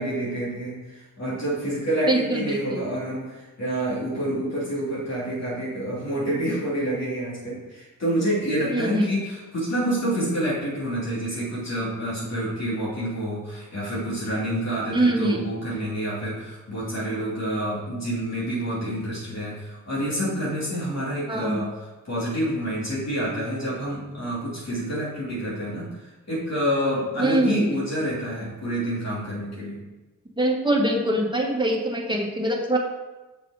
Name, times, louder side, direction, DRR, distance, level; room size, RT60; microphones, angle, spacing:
voice 1, 0.0-21.7 22.0-29.8, right 1 dB, 55° left, -7 dB, 2.8 m, -28 dB
voice 2, 2.1-2.8 8.7-9.1 14.9-15.4 21.3-21.7 27.2-27.8 30.4-32.8, right 1 dB, 15° right, 0 dB, 1.6 m, -23 dB
6.9 x 6.0 x 4.9 m, 1.2 s
cardioid pair, 80°, 32 cm